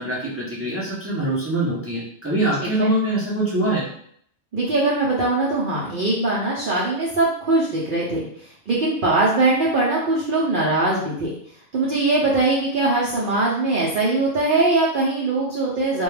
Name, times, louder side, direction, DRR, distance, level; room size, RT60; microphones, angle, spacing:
voice 1, 0.0-3.8, right 2 dB, 20° right, -6 dB, 0.4 m, -24 dB
voice 2, 2.6-2.9 4.5-11.3 11.7-16.0, right 2 dB, 60° right, -6 dB, 0.6 m, -21 dB
2.2 x 2.2 x 3.1 m, 0.64 s
omnidirectional pair, 1.2 m